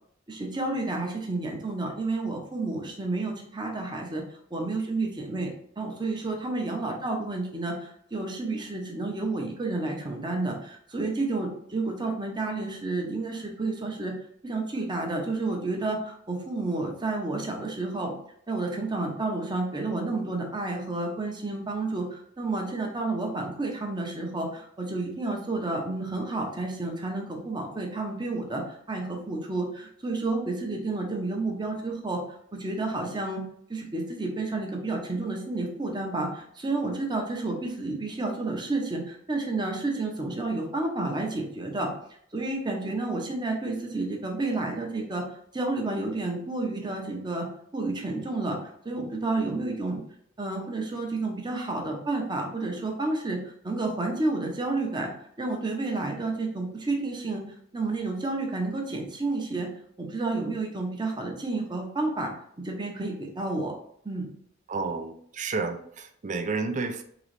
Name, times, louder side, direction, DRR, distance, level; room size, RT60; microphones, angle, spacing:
voice 1, 0.3-4.2 4.5-14.1 14.4-18.1 18.5-32.2 32.5-33.4 33.7-41.9 42.3-45.2 45.5-47.5 47.7-50.0 50.4-53.4 53.6-55.1 55.4-57.4 57.7-59.7 60.0-62.3 62.6-63.7 64.0-64.3, right 2 dB, 25° right, 1 dB, 0.9 m, -30 dB
voice 2, 64.7-67.0, right 4 dB, 40° right, 7 dB, 0.5 m, -31 dB
3.9 x 3.0 x 3.2 m, 0.65 s
head